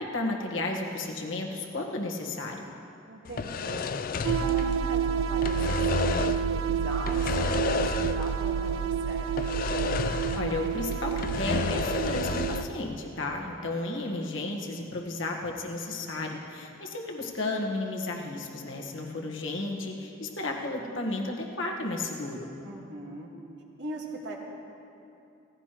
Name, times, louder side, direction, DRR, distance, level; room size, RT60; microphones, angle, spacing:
voice 1, 0.0-2.7 10.3-22.5, left 2 dB, 75° left, 0 dB, 1.5 m, -33 dB
voice 2, 3.1-3.9 4.4-9.6 22.6-23.3 23.8-24.4, right 1 dB, 60° right, -1 dB, 1.8 m, -40 dB
sound 1, 3.3-5.0 5.3-6.5 7.0-8.4 8.7-8.8 9.4-10.6 10.9-12.8, left 5 dB, 45° left, 0.4 m, -31 dB
sound 2, 4.2-12.6, right 7 dB, 85° right, 0.3 m, -29 dB
17.0 x 15.5 x 3.0 m, 2.7 s
head